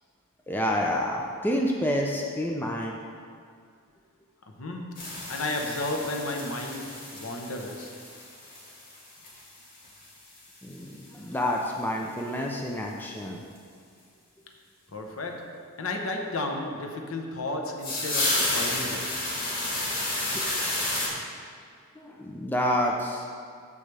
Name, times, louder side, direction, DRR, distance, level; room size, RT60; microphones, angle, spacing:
voice 1, 0.5-3.0 10.6-10.9 11.1-13.4 20.3-20.5 22.0-23.2, equal, 10° left, -1 dB, 0.5 m, -28 dB
voice 2, 4.5-8.0 14.9-19.4, left 2 dB, 65° left, 2 dB, 1.0 m, -33 dB
sound 1, 5.0-10.1 10.4-10.5 10.8-10.9 11.1-11.2 11.6-11.7 13.6-13.7 17.8-21.1, left 1 dB, 40° left, 2.1 m, -31 dB
13.5 x 4.9 x 3.3 m, 2.2 s
head